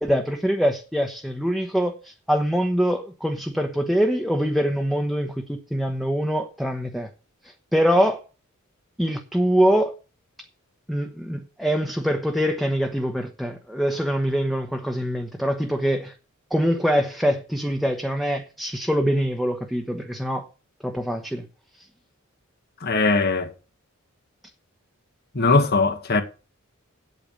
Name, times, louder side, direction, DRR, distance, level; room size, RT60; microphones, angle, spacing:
voice 1, 0.0-7.1 7.4-8.2 9.0-9.9 10.9-16.1 16.5-20.5 20.8-21.5 21.8-21.9, equal, ahead, 1.0 m, -24 dB
voice 2, 22.8-23.5 25.3-26.2, left 3 dB, 50° left, 1.7 m, -20 dB
9.0 x 8.5 x 6.4 m
head